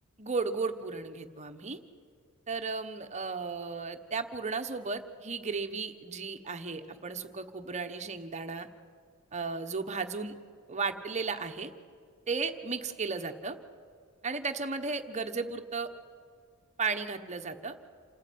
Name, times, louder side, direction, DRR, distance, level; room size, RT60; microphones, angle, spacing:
voice 1, 0.2-1.8 2.5-8.7 9.3-10.3 10.7-11.7 12.3-13.6 14.2-15.9 16.8-17.7, right 4 dB, 30° right, 7 dB, 1.2 m, -34 dB
28.0 x 14.5 x 9.4 m, 2.1 s
head